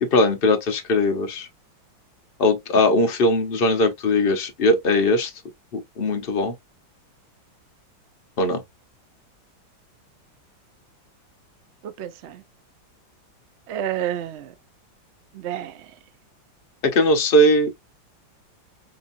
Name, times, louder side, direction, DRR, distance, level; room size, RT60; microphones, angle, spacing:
voice 1, 0.0-1.5 2.4-5.3 5.7-6.5 8.4-8.6 16.8-17.7, left 1 dB, 45° left, 0.7 m, -20 dB
voice 2, 11.8-12.4 13.7-14.5 15.3-15.9, right 11 dB, 85° right, 0.6 m, -30 dB
5.2 x 2.8 x 2.6 m
omnidirectional pair, 2.1 m